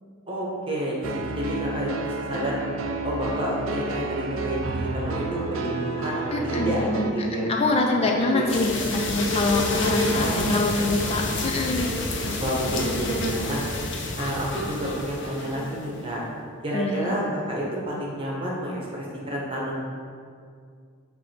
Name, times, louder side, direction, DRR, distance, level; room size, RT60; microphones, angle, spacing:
voice 1, 0.3-2.6 3.0-7.5 8.0-8.4 10.0-10.6 12.4-13.6 14.1-16.2 16.6-17.2 17.5-19.8, equal, 25° right, -4 dB, 1.1 m, -30 dB
sound 1, 1.0-7.1, right 3 dB, 75° right, 0.4 m, -31 dB
voice 2, 6.3-7.1 7.3-11.9 16.7-17.1, left 2 dB, 30° left, 1 dB, 0.3 m, -25 dB
sound 2, 8.5-16.0, left 2 dB, 60° left, 0.7 m, -28 dB
8.1 x 2.7 x 4.4 m, 2.2 s
head